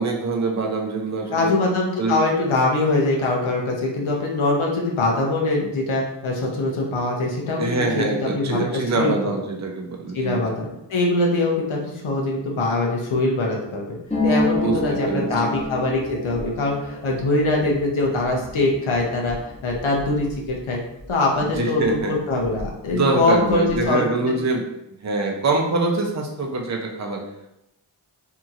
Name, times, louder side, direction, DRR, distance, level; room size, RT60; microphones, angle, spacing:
voice 1, 0.0-1.5 2.0-2.2 7.6-10.4 14.6-15.3 21.4-22.1 22.9-24.6 25.0-27.2, right 3 dB, 35° right, 1 dB, 0.5 m, -24 dB
voice 2, 1.3-9.2 10.1-14.0 14.2-19.4 19.6-20.8 21.1-24.4, left 2 dB, 85° left, -1 dB, 0.7 m, -23 dB
Harp, 14.1-21.6 21.8-22.9 23.2-23.9, left 1 dB, 15° left, 0.9 m, -30 dB
2.8 x 2.8 x 2.4 m, 0.84 s
wide cardioid pair, 65°, 47 cm